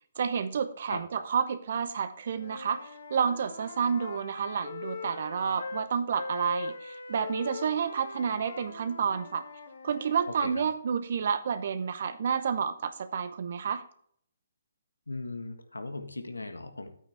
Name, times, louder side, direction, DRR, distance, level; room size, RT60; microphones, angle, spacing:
voice 1, 0.2-9.4 9.8-13.8, right 7 dB, 55° right, 11 dB, 0.8 m, -30 dB
Wind instrument woodwind instrument, 2.3-5.9 6.2-10.4, left 3 dB, 65° left, 1.6 m, -41 dB
voice 2, 15.1-16.9, left 2 dB, 85° left, 7 dB, 1.4 m, -38 dB
9.7 x 8.8 x 3.5 m, 0.62 s
figure-of-eight pair, 135°, 0 cm